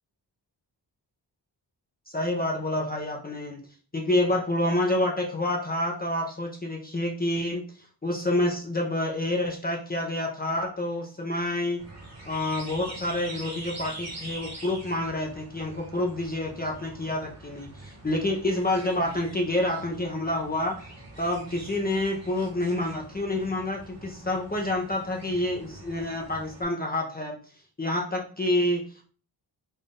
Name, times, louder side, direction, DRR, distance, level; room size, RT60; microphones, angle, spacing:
voice 1, 2.1-3.6 3.9-7.6 8.0-11.8 12.3-20.9 21.2-27.4 27.8-29.0, left 1 dB, 20° left, 0 dB, 0.7 m, -28 dB
sound 1, 11.8-26.6, right 2 dB, 35° right, 1.5 m, -44 dB
4.0 x 2.5 x 3.6 m, 0.39 s
wide cardioid pair, 85°, 43 cm